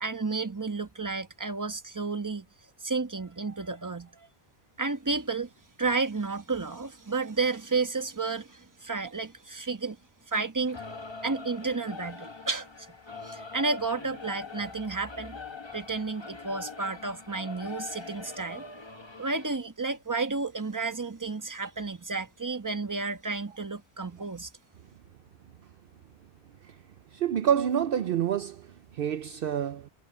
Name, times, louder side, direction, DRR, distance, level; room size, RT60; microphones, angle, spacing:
voice 1, 0.0-2.5 2.8-4.3 4.8-5.5 5.8-10.0 10.3-10.8 11.2-12.7 13.2-15.4 15.7-18.6 19.2-24.5, right 3 dB, 20° right, 1.1 m, -31 dB
Singing / Musical instrument, 10.7-19.6, left 4 dB, 25° left, 1.2 m, -43 dB
voice 2, 27.1-29.9, right 9 dB, 65° right, 0.8 m, -28 dB
omnidirectional pair, 1.1 m